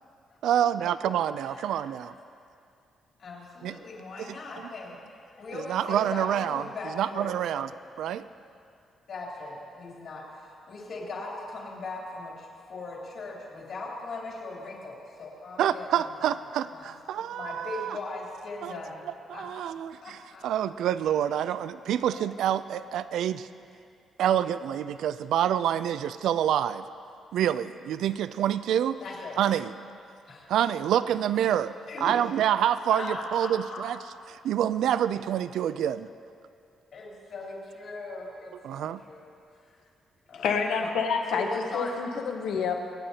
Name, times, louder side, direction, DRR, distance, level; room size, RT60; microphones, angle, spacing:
voice 1, 0.4-2.1 3.6-3.8 4.3-4.4 5.7-6.6 7.0-7.7 8.0-8.2 15.6-18.0 18.6-18.8 19.3-23.5 24.2-26.8 27.3-29.0 29.4-29.7 30.5-34.0 34.3-36.1 38.6-39.0, right 10 dB, 85° right, 14 dB, 0.3 m, -27 dB
voice 2, 3.2-5.0 5.4-7.3 9.1-16.4 16.7-16.9 17.3-19.0 19.3-19.4 20.0-20.5 22.1-22.3 29.0-29.4 30.3-30.5 31.9-32.1 32.9-33.8 36.9-39.3 40.3-41.0 41.3-41.9, left 3 dB, 55° left, -4 dB, 3.1 m, -39 dB
voice 3, 40.3-41.5 41.7-42.7, left 5 dB, 80° left, 3 dB, 1.1 m, -28 dB
24.5 x 9.0 x 2.8 m, 2.4 s
cardioid pair, 140°, 0 cm